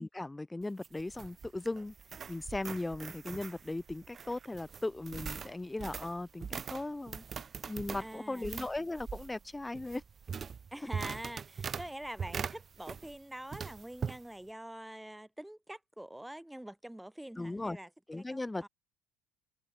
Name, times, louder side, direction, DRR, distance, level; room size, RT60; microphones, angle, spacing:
voice 1, 0.0-1.9 2.3-7.2 7.7-10.0 17.4-17.8 18.1-18.7, left 2 dB, 10° left, 1.8 m, -38 dB
sound 1, 0.6-13.2 13.5-14.2, right 6 dB, 35° right, 3.3 m, -42 dB
voice 2, 8.0-8.5 10.7-18.7, right 1 dB, 5° right, 7.5 m, -45 dB
figure-of-eight pair, 60°, 0 cm